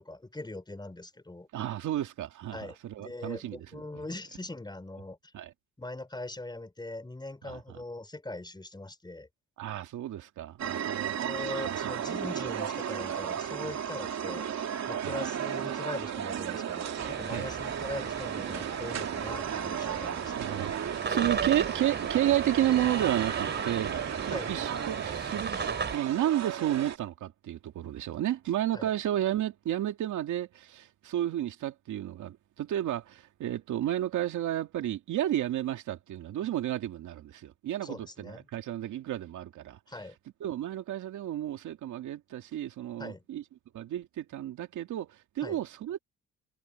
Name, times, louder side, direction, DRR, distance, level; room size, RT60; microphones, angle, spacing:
voice 1, 0.0-1.5 2.5-5.3 5.8-9.3 11.1-14.5 14.8-20.6 21.1-21.5 24.3-24.5 28.7-28.9 37.8-38.4 39.9-40.2 43.0-43.2 45.4-45.6, left 2 dB, 15° left, 4.3 m, -41 dB
voice 2, 1.5-3.8 5.3-5.5 7.4-7.6 9.6-11.2 11.6-11.9 13.6-13.7 15.0-15.2 17.3-17.5 20.4-25.5 25.9-39.8 40.4-43.4 43.7-46.0, right 12 dB, 75° right, 2.3 m, -32 dB
sound 1, 10.6-27.0, right 9 dB, 60° right, 2.5 m, -34 dB
sound 2, 16.9-26.0, right 5 dB, 35° right, 4.8 m, -36 dB
cardioid pair, 90°, 30 cm